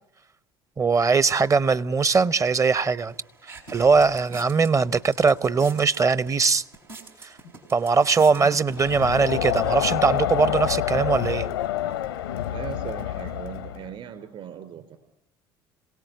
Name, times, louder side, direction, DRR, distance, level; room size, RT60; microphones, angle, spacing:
voice 1, 0.8-3.1 3.7-6.6 7.7-11.5, right 4 dB, 25° right, 0.9 m, -21 dB
sound 1, 3.1-10.0, right 2 dB, 90° right, 4.4 m, -46 dB
Crowd, 8.8-13.9, left 12 dB, 85° left, 0.9 m, -27 dB
voice 2, 12.5-15.0, right 9 dB, 55° right, 3.5 m, -38 dB
27.0 x 18.0 x 9.3 m
hypercardioid pair, 60°, 12 cm